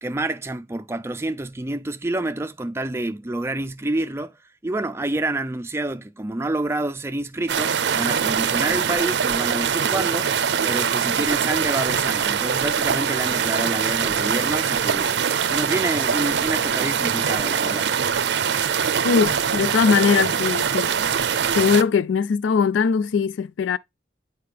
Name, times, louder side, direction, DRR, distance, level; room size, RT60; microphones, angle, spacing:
voice 1, 0.0-4.4 4.6-10.3 10.6-15.1 15.5-17.9, right 2 dB, 15° right, 0.4 m, -28 dB
sound 1, 7.5-21.8, right 7 dB, 70° right, 0.5 m, -23 dB
voice 2, 19.0-20.9 21.5-23.8, left 6 dB, 85° left, 0.3 m, -20 dB
8.5 x 4.4 x 3.3 m
head